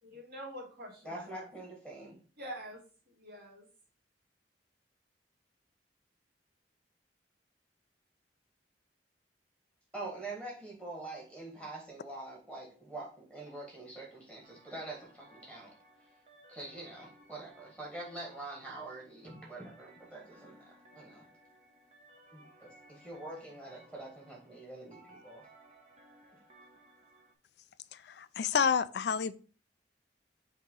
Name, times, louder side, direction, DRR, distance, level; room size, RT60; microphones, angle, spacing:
voice 1, 0.0-1.4 2.4-2.8 3.1-3.7, equal, 60° right, -6 dB, 2.7 m, -45 dB
voice 2, 1.0-2.2 9.9-15.7 16.5-21.2 22.3-25.4, right 2 dB, 10° right, -2 dB, 1.6 m, -45 dB
sound 1, 14.4-27.3, right 1 dB, 35° right, 1.0 m, -60 dB
voice 3, 27.9-29.4, left 6 dB, 65° left, 15 dB, 0.4 m, -29 dB
5.9 x 2.9 x 5.4 m, 0.40 s
head